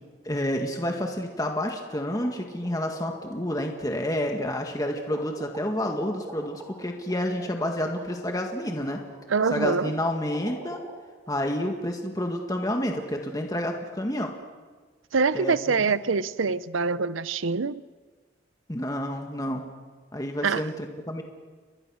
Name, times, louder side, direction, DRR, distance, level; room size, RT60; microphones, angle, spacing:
voice 1, 0.2-9.0 9.5-10.8 11.3-14.3 15.3-15.9 18.7-19.7 20.1-21.2, left 1 dB, 20° left, 1.9 m, -29 dB
sound 1, 1.8-10.9, right 1 dB, 15° right, 5.2 m, -44 dB
voice 2, 9.3-9.9 15.1-17.8 20.4-20.7, right 4 dB, 90° right, 0.7 m, -25 dB
30.0 x 22.5 x 6.4 m
head